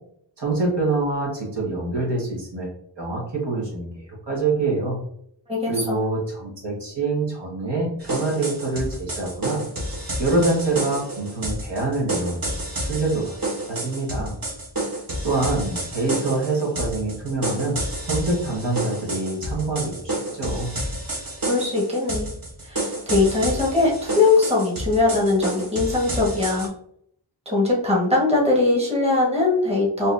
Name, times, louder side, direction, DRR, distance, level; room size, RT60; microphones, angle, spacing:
voice 1, 0.4-2.7 3.0-5.0 5.7-9.6 10.2-12.5 12.8-13.4 13.7-14.3 15.2-20.7, right 3 dB, 60° right, -4 dB, 1.4 m, -25 dB
voice 2, 5.5-6.0 21.5-22.3 22.6-26.7 27.4-30.1, left 3 dB, 15° right, -4 dB, 1.3 m, -21 dB
sound 1, 8.0-26.7, right 1 dB, 45° right, 1.1 m, -30 dB
4.1 x 2.7 x 2.5 m, 0.68 s
wide cardioid pair, 60°, 47 cm